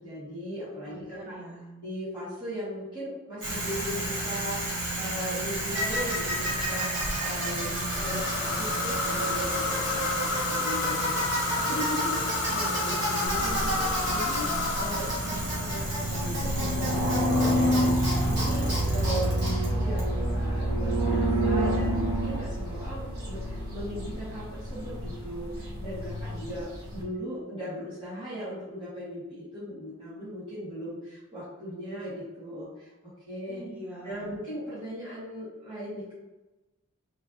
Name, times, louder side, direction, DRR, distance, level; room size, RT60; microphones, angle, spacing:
voice 1, 0.0-1.4 1.8-8.1 8.6-32.9 33.3-33.6 34.0-36.1, equal, 25° right, -11 dB, 1.4 m, -38 dB
voice 2, 0.9-1.8 7.5-8.9 18.1-19.0 33.5-34.4, right 1 dB, 5° right, -4 dB, 0.6 m, -43 dB
Bicycle, 3.4-20.5, right 1 dB, 55° right, 1.1 m, -31 dB
sound 1, 7.6-16.2, left 4 dB, 60° left, 0.4 m, -32 dB
sound 2, 13.3-27.0, equal, 75° right, 1.0 m, -29 dB
3.2 x 3.1 x 2.6 m, 1.1 s
head